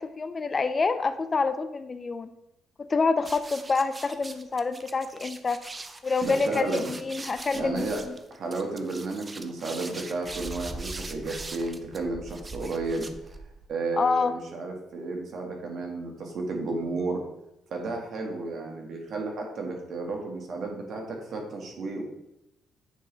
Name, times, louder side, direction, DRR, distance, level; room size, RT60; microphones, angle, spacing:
voice 1, 0.0-2.3 2.8-5.6 6.0-8.1 14.0-14.3, left 4 dB, 35° left, 11 dB, 0.4 m, -27 dB
sound 1, 3.2-13.7, right 2 dB, 25° right, 0.5 m, -41 dB
voice 2, 6.2-6.9 7.5-8.0 8.3-13.3 13.7-17.2 17.7-22.0, right 3 dB, 60° right, 1 dB, 1.5 m, -32 dB
9.0 x 3.3 x 3.8 m, 0.86 s
cardioid pair, 90°, 0 cm